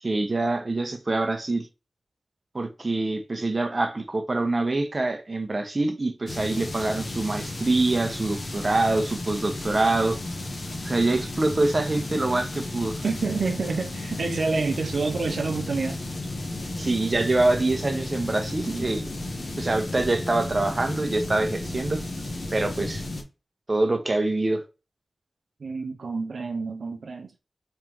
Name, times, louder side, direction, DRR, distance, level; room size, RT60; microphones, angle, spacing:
voice 1, 0.0-1.7 2.5-10.2 10.8-13.0 16.8-19.0 19.6-22.0 22.5-23.0 23.7-24.6, right 2 dB, 45° right, 0.8 m, -25 dB
sound 1, 6.3-23.2, left 2 dB, 65° left, 1.1 m, -33 dB
voice 2, 13.0-16.0 25.6-27.3, right 4 dB, 85° right, 0.5 m, -28 dB
3.5 x 3.3 x 3.0 m
cardioid pair, 50°, 0 cm